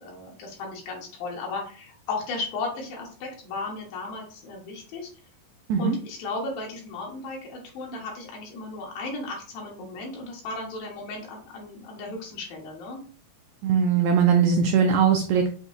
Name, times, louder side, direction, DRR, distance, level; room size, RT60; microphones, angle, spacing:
voice 1, 0.0-5.1 5.8-13.0, left 3 dB, 80° left, -1 dB, 2.9 m, -35 dB
voice 2, 13.6-15.5, right 6 dB, 90° right, 4 dB, 1.6 m, -20 dB
7.5 x 2.6 x 2.6 m, 0.41 s
omnidirectional pair, 4.0 m